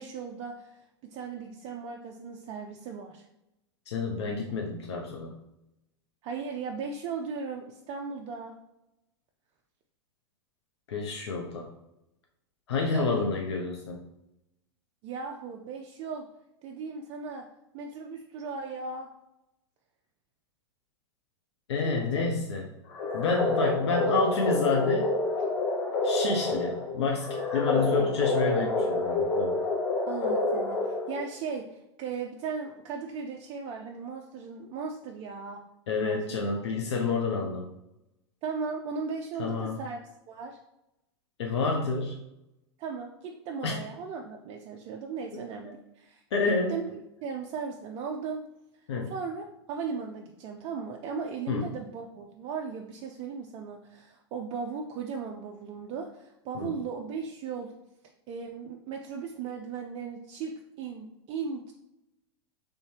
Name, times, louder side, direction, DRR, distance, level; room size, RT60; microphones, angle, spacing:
voice 1, 0.0-3.3 6.2-8.5 12.9-13.3 15.0-16.2 16.6-17.4 17.7-19.1 21.8-22.3 23.3-23.7 27.5-28.1 28.5-28.9 30.1-35.6 35.9-36.5 38.4-40.0 40.3-40.6 42.8-46.2 46.7-46.9 47.2-48.4 49.1-57.7 58.3-60.5 60.8-61.7, right 5 dB, 40° right, 2 dB, 0.4 m, -37 dB
voice 2, 3.9-5.3 10.9-11.7 12.7-14.0 21.7-22.7 23.1-25.1 26.0-29.5 35.9-37.7 39.4-39.8 41.4-42.2 43.6-43.7 46.3-46.8 48.9-49.1 51.5-51.7 56.5-56.8, left 4 dB, 70° left, 1 dB, 0.5 m, -29 dB
sound 1, 22.9-31.3, left 2 dB, 45° left, 0.9 m, -28 dB
3.3 x 2.6 x 3.2 m, 0.89 s
hypercardioid pair, 95°, 15 cm